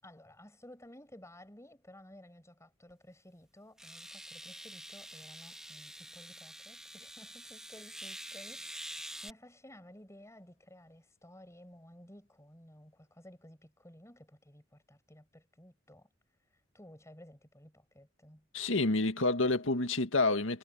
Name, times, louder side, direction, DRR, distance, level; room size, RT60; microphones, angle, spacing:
voice 1, 0.0-16.1 16.7-18.5, left 1 dB, 15° left, 6.9 m, -55 dB
sound 1, 2.9-3.0 3.8-9.3, right 1 dB, 5° right, 2.6 m, -47 dB
voice 2, 18.5-20.6, left 2 dB, 90° left, 1.9 m, -28 dB
head